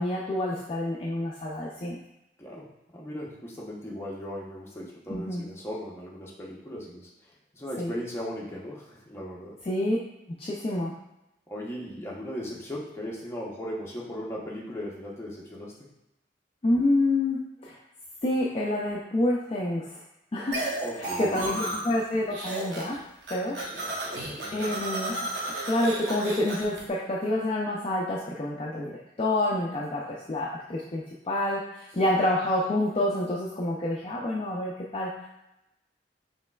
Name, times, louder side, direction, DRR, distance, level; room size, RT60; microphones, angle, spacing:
voice 1, 0.0-2.0 5.1-5.4 7.8-7.9 9.6-10.0 10.4-10.9 16.6-17.8 18.2-20.0 20.3-23.0 23.3-23.6 23.9-24.1 24.5-25.1 25.7-35.1, left 1 dB, 30° left, -4 dB, 0.4 m, -28 dB
voice 2, 2.9-7.1 7.5-9.6 11.5-15.8 20.8-21.8 23.7-24.8 31.9-32.1, equal, 15° left, -5 dB, 0.8 m, -38 dB
sound 1, 20.5-22.0 22.3-23.0 23.2-26.8, right 1 dB, 75° right, 0.9 m, -33 dB
5.2 x 3.1 x 2.3 m, 0.90 s
head